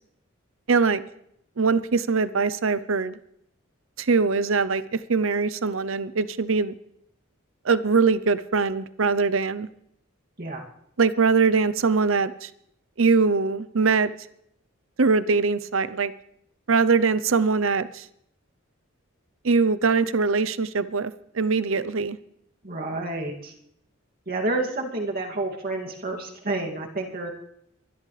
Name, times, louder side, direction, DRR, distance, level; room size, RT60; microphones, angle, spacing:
voice 1, 0.7-1.0 1.6-3.2 4.0-6.7 7.6-9.7 11.0-12.5 13.0-14.1 15.0-16.1 16.7-18.1 19.4-22.2, right 4 dB, 65° right, 15 dB, 0.7 m, -22 dB
voice 2, 22.6-23.5 24.3-27.3, right 2 dB, 45° right, 1 dB, 2.5 m, -29 dB
23.0 x 12.0 x 3.3 m, 0.73 s
head